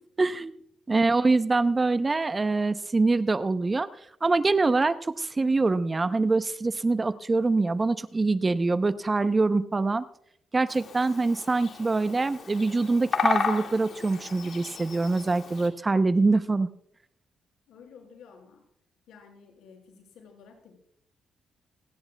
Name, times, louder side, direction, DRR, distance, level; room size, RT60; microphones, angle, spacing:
voice 1, 0.2-0.5 0.9-3.9 4.2-10.0 10.5-16.7, right 3 dB, 30° right, 13 dB, 0.7 m, -24 dB
Bird vocalization bird call bird song, 10.7-15.7, left 5 dB, 60° left, 2.0 m, -33 dB
voice 2, 17.7-18.6 19.1-20.7, left 6 dB, 80° left, 0 dB, 5.2 m, -52 dB
28.0 x 10.5 x 2.3 m, 0.70 s
cardioid pair, 70°, 0 cm